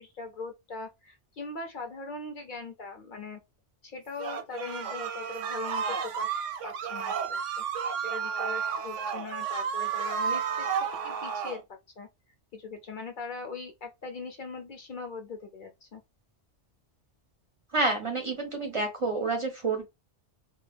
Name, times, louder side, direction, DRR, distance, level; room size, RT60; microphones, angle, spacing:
voice 1, 0.0-3.4 3.8-7.4 8.0-11.6 12.0-12.1 12.5-16.0, left 4 dB, 60° left, 0.5 m, -40 dB
sound 1, 4.2-11.6, right 7 dB, 90° right, 0.9 m, -32 dB
voice 2, 17.7-19.8, right 3 dB, 40° right, 0.4 m, -28 dB
2.2 x 2.1 x 3.2 m
omnidirectional pair, 1.2 m